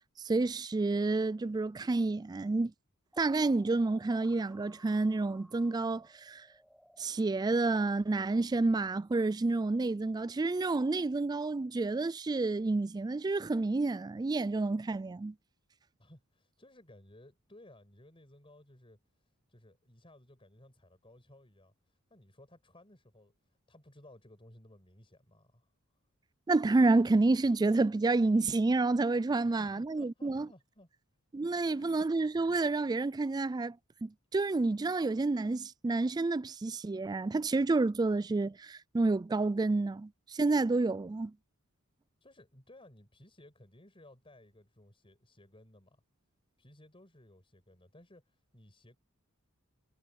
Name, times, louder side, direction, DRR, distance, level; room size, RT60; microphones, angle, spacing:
voice 1, 0.2-2.7 3.2-6.4 7.0-15.3 26.5-30.5 31.3-33.8 34.0-41.3, right 3 dB, 20° right, 0.3 m, -29 dB
sound 1, 3.1-7.0, equal, ahead, 7.3 m, -62 dB
voice 2, 16.0-25.7 29.3-30.9 31.4-32.0 42.2-46.0 46.6-49.0, left 1 dB, 25° left, 5.7 m, -58 dB
head